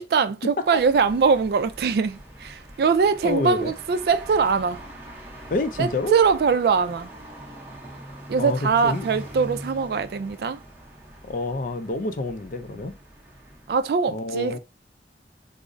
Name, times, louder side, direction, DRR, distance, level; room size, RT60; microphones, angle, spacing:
voice 1, 0.0-4.8 5.8-7.1 8.3-10.6 13.7-14.6, right 5 dB, 60° right, 0.3 m, -22 dB
sound 1, 0.6-13.9, right 1 dB, 10° right, 0.7 m, -42 dB
voice 2, 3.2-3.7 5.5-6.2 8.4-9.1 11.2-12.9 14.1-14.6, left 2 dB, 50° left, 0.4 m, -28 dB
4.9 x 2.0 x 2.5 m
head